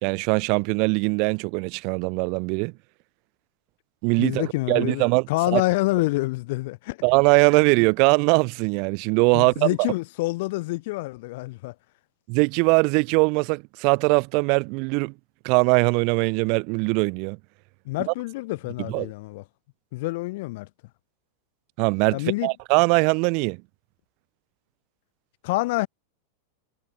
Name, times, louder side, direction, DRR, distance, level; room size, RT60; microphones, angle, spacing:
voice 1, 0.0-2.7 4.0-5.6 7.0-9.9 12.3-15.1 15.4-17.4 18.1-18.2 18.9-19.1 21.8-23.6, right 34 dB, 45° right, 2.9 m, -21 dB
voice 2, 4.2-7.0 9.3-11.7 17.8-19.4 19.9-20.7 22.1-22.5 25.4-25.9, left 21 dB, 50° left, 3.3 m, -27 dB
figure-of-eight pair, 90°, 0 cm